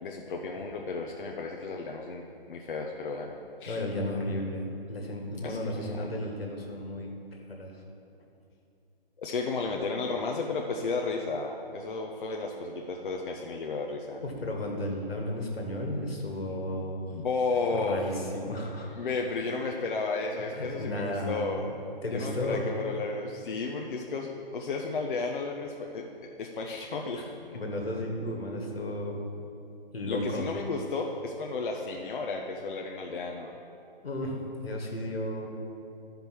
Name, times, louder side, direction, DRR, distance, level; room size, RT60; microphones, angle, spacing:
voice 1, 0.0-2.2 2.5-3.8 5.4-6.2 9.2-14.2 17.1-18.0 18.9-21.7 22.1-26.0 26.4-27.2 30.1-33.5, left 4 dB, 55° left, 1 dB, 0.8 m, -33 dB
voice 2, 3.7-7.1 7.5-7.7 14.2-17.3 17.7-18.9 20.5-21.4 22.0-22.7 27.2-27.3 27.5-29.2 29.9-30.5 34.0-35.5, left 1 dB, 85° left, 0 dB, 1.9 m, -33 dB
12.0 x 5.3 x 4.5 m, 2.6 s
figure-of-eight pair, 145°, 30 cm